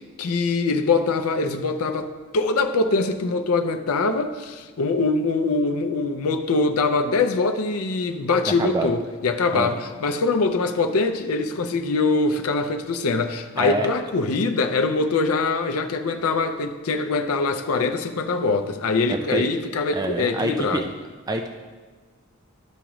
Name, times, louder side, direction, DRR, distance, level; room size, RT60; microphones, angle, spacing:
voice 1, 0.0-20.8, left 3 dB, 75° left, 6 dB, 0.5 m, -23 dB
voice 2, 8.6-8.9 9.5-9.7 13.6-13.9 19.1-19.4 19.9-20.9 21.3-21.5, right 2 dB, 15° right, 4 dB, 0.3 m, -26 dB
12.5 x 4.9 x 3.0 m, 1.3 s
head